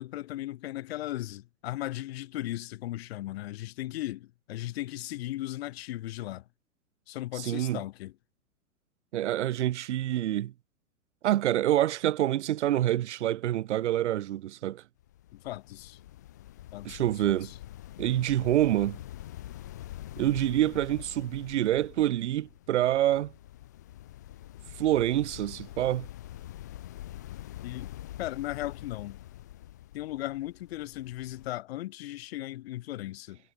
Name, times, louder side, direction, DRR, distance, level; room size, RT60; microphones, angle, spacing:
voice 1, 0.0-6.4 7.1-8.1 15.3-16.0 16.7-17.6 27.6-27.9 28.2-29.2 29.9-33.4, left 15 dB, 45° left, 1.1 m, -37 dB
voice 2, 7.4-7.8 9.1-10.5 11.2-14.8 16.8-17.5 18.0-19.0 20.2-23.3 24.8-26.1, right 13 dB, 50° right, 0.7 m, -27 dB
sound 1, 15.0-31.5, left 13 dB, 15° left, 0.3 m, -45 dB
figure-of-eight pair, 110°, 44 cm